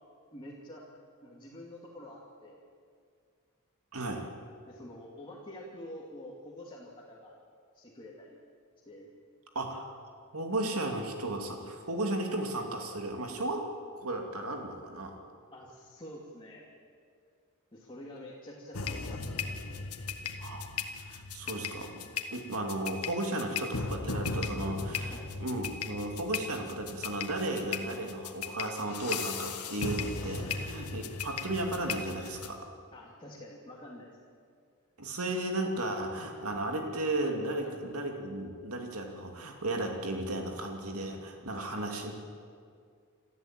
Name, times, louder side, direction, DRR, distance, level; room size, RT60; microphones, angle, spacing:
voice 1, 0.3-0.8 1.2-2.6 4.7-7.4 7.7-8.4 8.9-9.1 15.5-16.7 17.7-19.8 25.1-25.3 30.4-30.6 32.9-34.2 37.6-37.8 41.5-41.6, left 1 dB, 20° left, -3 dB, 2.7 m, -47 dB
voice 2, 3.9-4.3 9.5-10.0 10.3-13.6 13.9-15.1 20.4-20.7 21.0-32.7 35.0-42.1, right 1 dB, 75° right, 3 dB, 2.7 m, -35 dB
sound 1, 18.7-32.5, left 5 dB, 85° left, 1.7 m, -37 dB
27.5 x 14.0 x 9.0 m, 2.2 s
head